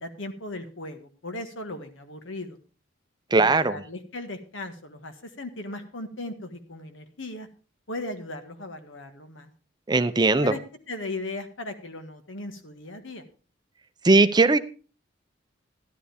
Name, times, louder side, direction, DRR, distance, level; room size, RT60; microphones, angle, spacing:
voice 1, 0.0-2.6 3.4-7.5 7.9-9.5 10.4-10.6 10.9-13.3, left 2 dB, 75° left, 7 dB, 1.6 m, -37 dB
voice 2, 3.3-3.8 9.9-10.5 14.0-14.6, right 3 dB, 20° right, 11 dB, 0.6 m, -19 dB
13.5 x 11.0 x 3.5 m, 0.37 s
head